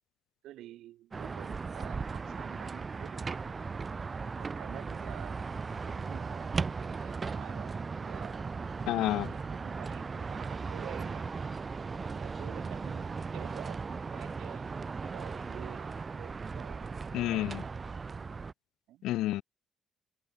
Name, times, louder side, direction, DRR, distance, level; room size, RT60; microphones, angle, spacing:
voice 1, 0.4-3.5 4.4-5.5 5.8-8.4 9.1-11.3 12.1-17.6 18.9-19.0, right 14 dB, 85° right, 6.4 m, -49 dB
sound 1, 1.1-18.5, right 4 dB, 35° right, 1.1 m, -37 dB
voice 2, 8.9-9.3 17.1-17.6 19.0-19.4, left 15 dB, 90° left, 0.8 m, -29 dB
cardioid pair, 90°, 0 cm